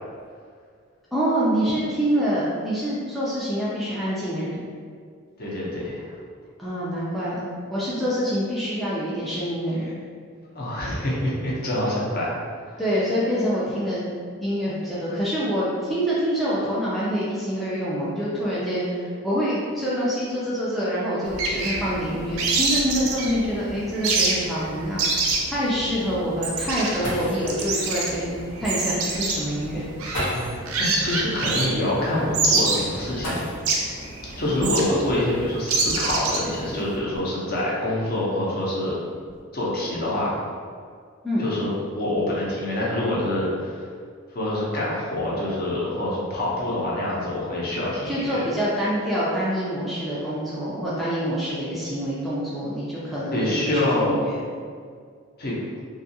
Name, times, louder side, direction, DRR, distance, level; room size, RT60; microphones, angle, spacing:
voice 1, 1.1-4.7 6.6-10.0 12.8-14.1 14.4-29.8 41.2-41.5 48.1-54.4, equal, ahead, -9 dB, 0.3 m, -26 dB
voice 2, 5.4-6.1 10.5-12.3 12.7-12.8 30.3-30.5 30.7-33.4 34.4-39.0 39.5-40.4 41.4-43.9 44.3-48.2 53.3-54.2 55.4-55.6, left 1 dB, 45° left, -6 dB, 0.7 m, -26 dB
sound 1, 21.3-37.0, right 3 dB, 80° right, 0.4 m, -27 dB
sound 2, 27.0-27.6 28.9-29.0 30.1-30.7 33.2-33.9 35.3-35.4 36.1-37.6 38.3-38.6 39.0-39.4, left 1 dB, 70° left, 0.9 m, -33 dB
2.6 x 2.3 x 2.7 m, 2.1 s
head